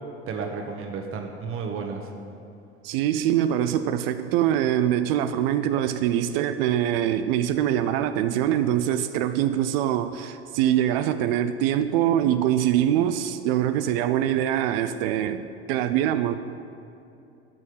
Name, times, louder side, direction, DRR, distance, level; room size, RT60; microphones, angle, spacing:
voice 1, 0.3-2.1, right 5 dB, 40° right, 3 dB, 1.5 m, -32 dB
voice 2, 2.8-16.3, right 11 dB, 60° right, 10 dB, 0.7 m, -23 dB
13.5 x 6.4 x 9.4 m, 2.7 s
figure-of-eight pair, 75°, 34 cm